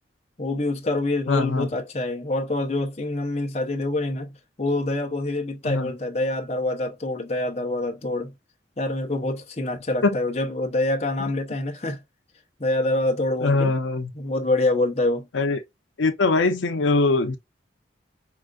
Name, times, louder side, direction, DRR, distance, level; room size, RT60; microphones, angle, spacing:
voice 1, 0.4-4.3 4.6-8.3 8.8-12.0 12.6-13.7 14.1-15.3, left 2 dB, 35° left, 0.8 m, -26 dB
voice 2, 1.3-1.7 5.6-5.9 10.0-10.2 13.4-14.1 15.3-15.6 16.0-17.4, left 3 dB, 80° left, 0.6 m, -22 dB
4.8 x 2.5 x 2.3 m
head